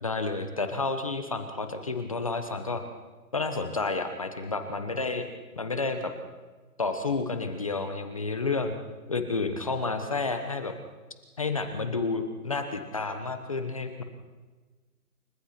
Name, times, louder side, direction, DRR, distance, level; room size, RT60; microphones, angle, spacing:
voice 1, 0.0-2.8 3.3-5.2 5.6-6.1 6.8-8.7 9.1-10.7 11.4-14.0, left 3 dB, 25° left, 7 dB, 1.3 m, -30 dB
29.5 x 15.0 x 5.9 m, 1.3 s
hypercardioid pair, 175°, 44 cm